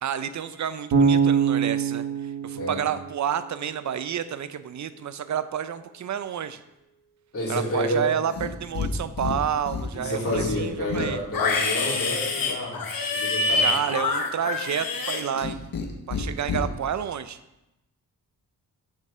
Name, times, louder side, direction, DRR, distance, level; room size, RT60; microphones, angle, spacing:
voice 1, 0.0-6.6 7.5-11.2 13.6-15.6 16.1-17.4, right 9 dB, 50° right, 13 dB, 0.6 m, -30 dB
Bass guitar, 0.9-3.9, right 6 dB, 80° right, 1.6 m, -24 dB
voice 2, 7.3-8.1 9.9-12.8 13.1-13.7, left 1 dB, 35° left, -4 dB, 3.2 m, -29 dB
Livestock farm animals working animals, 8.3-8.9 9.2-9.9 10.3-15.9 16.1-16.6, left 4 dB, 60° left, 1.4 m, -27 dB
7.6 x 6.3 x 5.6 m, 0.92 s
cardioid pair, 85°, 38 cm